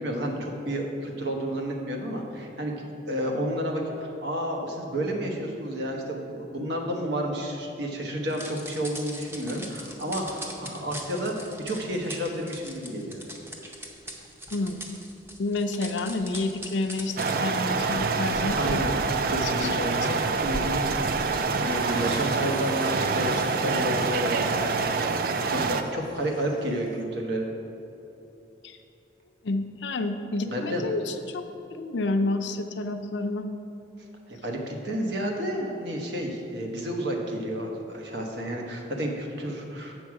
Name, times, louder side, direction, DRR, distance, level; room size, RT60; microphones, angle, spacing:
voice 1, 0.0-13.2 18.6-18.9 19.3-20.0 20.4-20.8 21.6-24.7 25.3-27.5 30.4-30.8 34.0-39.9, equal, 75° right, 1 dB, 1.1 m, -31 dB
sound 1, 8.3-21.3, equal, 15° right, 0.7 m, -40 dB
voice 2, 14.5-14.9 15.4-20.3 28.6-28.8 29.4-33.5, left 2 dB, 80° left, 7 dB, 0.5 m, -30 dB
sound 2, 17.2-25.8, right 4 dB, 50° right, 0.4 m, -26 dB
sound 3, 21.6-27.0, left 3 dB, 25° left, 0.5 m, -43 dB
8.0 x 6.2 x 4.8 m, 2.9 s
head